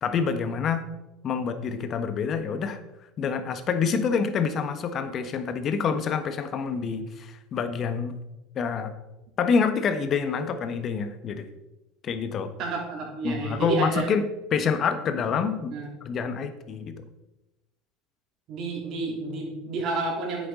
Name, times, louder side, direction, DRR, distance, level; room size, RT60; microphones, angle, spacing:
voice 1, 0.0-0.8 1.2-2.8 3.2-8.2 8.5-8.9 9.4-11.5 12.0-12.5 13.2-15.7 16.0-16.9, left 6 dB, 40° left, 9 dB, 1.2 m, -27 dB
voice 2, 12.6-14.1 15.7-15.9 18.5-20.5, right 3 dB, 55° right, -1 dB, 3.3 m, -30 dB
10.0 x 7.7 x 3.8 m, 0.97 s
hypercardioid pair, 80°, 0 cm